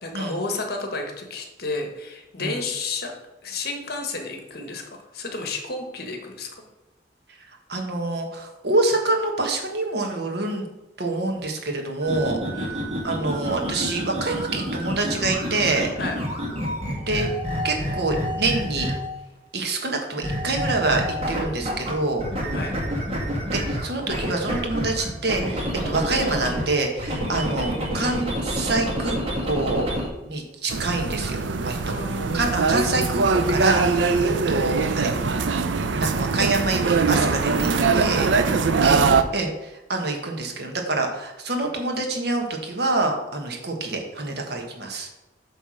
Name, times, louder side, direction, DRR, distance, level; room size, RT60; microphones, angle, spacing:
voice 1, 0.0-3.1 3.4-4.9 5.1-6.5 12.5-13.0 16.0-16.2 22.5-22.7 31.8-32.4 38.5-39.0, left 3 dB, 55° left, 3 dB, 1.3 m, -32 dB
voice 2, 7.7-10.7 11.0-15.9 17.1-17.3 17.6-18.9 19.5-22.2 23.5-29.2 29.5-29.9 30.2-31.8 32.3-35.5 35.9-38.3 38.8-45.1, right 2 dB, 60° right, 2 dB, 1.3 m, -26 dB
sound 1, 12.0-19.2 20.2-21.9 22.2-26.6 27.0-30.1, equal, 35° right, 1.9 m, -28 dB
sound 2, 30.7-39.2, right 4 dB, 85° right, 0.5 m, -22 dB
8.4 x 3.4 x 6.2 m, 0.99 s
head